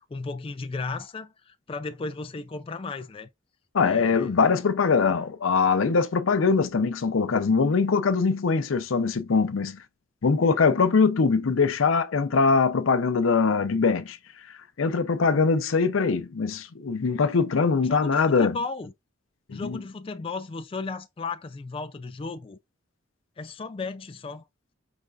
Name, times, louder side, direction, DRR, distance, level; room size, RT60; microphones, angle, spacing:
voice 1, 0.0-3.3 3.8-4.3 17.8-18.9 19.5-22.6 23.4-24.4, left 3 dB, 25° left, 0.3 m, -35 dB
voice 2, 3.7-9.8 10.2-14.2 14.8-18.5 19.5-19.8, left 5 dB, 80° left, 0.6 m, -22 dB
5.0 x 3.3 x 2.3 m
head